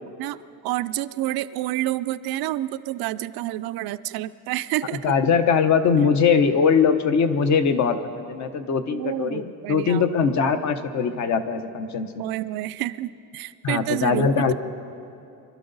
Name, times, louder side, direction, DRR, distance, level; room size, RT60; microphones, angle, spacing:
voice 1, 0.2-5.0 5.9-6.1 8.9-10.1 12.2-14.5, right 15 dB, 70° right, 14 dB, 0.5 m, -29 dB
voice 2, 5.0-12.2 13.6-14.5, left 6 dB, 50° left, 9 dB, 1.0 m, -21 dB
25.0 x 12.5 x 4.0 m, 2.6 s
cardioid pair, 155°, 38 cm